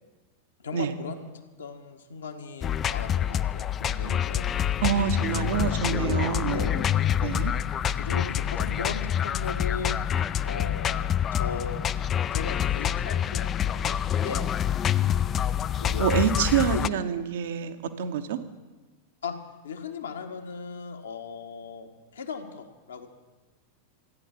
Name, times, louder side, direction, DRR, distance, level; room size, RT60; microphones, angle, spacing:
voice 1, 0.6-1.3 1.6-5.9 6.5-6.9 7.9-10.0 10.4-11.8 12.3-14.4 15.4-16.9 19.2-19.4 19.6-23.1, left 5 dB, 70° left, 5 dB, 1.4 m, -38 dB
sound 1, 2.6-16.9, left 9 dB, 25° left, 0.4 m, -27 dB
voice 2, 4.8-6.7 7.2-7.5 16.0-18.4, right 8 dB, 55° right, 10 dB, 1.1 m, -26 dB
15.0 x 10.0 x 7.3 m, 1.3 s
figure-of-eight pair, 90°, 0 cm